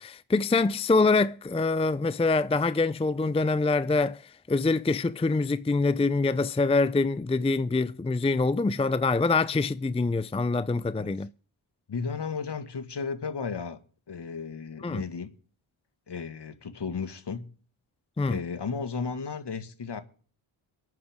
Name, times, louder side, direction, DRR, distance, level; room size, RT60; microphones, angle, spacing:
voice 1, 0.0-11.3 14.8-15.0 18.2-18.4, left 3 dB, 10° left, 0.5 m, -25 dB
voice 2, 11.9-13.8 14.1-15.3 16.1-17.4 18.3-20.0, left 5 dB, 55° left, 1.9 m, -34 dB
24.0 x 9.2 x 3.7 m
cardioid pair, 60°, 49 cm